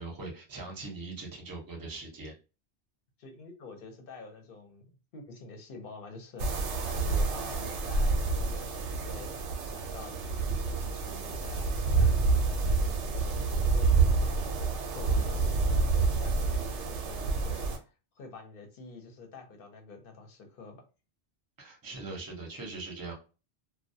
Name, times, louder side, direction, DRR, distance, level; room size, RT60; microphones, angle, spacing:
voice 1, 0.0-2.3 21.6-23.1, right 3 dB, 25° right, 0 dB, 0.6 m, -41 dB
voice 2, 3.2-20.8, left 4 dB, 55° left, 3 dB, 0.8 m, -48 dB
sound 1, 6.4-17.8, right 4 dB, 85° right, 0.9 m, -28 dB
2.2 x 2.2 x 2.6 m, 0.32 s
omnidirectional pair, 1.2 m